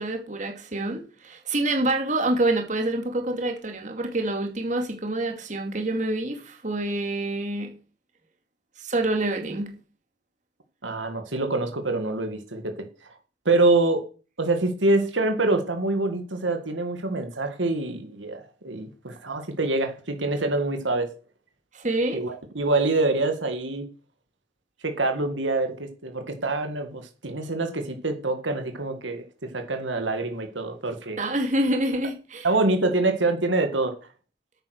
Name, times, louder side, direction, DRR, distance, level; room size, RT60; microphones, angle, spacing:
voice 1, 0.0-7.7 8.8-9.7 21.7-22.2 31.2-32.5, right 2 dB, 40° right, 2.5 m, -27 dB
voice 2, 10.8-13.2 13.5-14.1 14.4-21.1 22.1-23.9 24.8-31.2 32.4-33.9, right 2 dB, 85° right, 1.9 m, -25 dB
10.5 x 9.0 x 6.5 m
head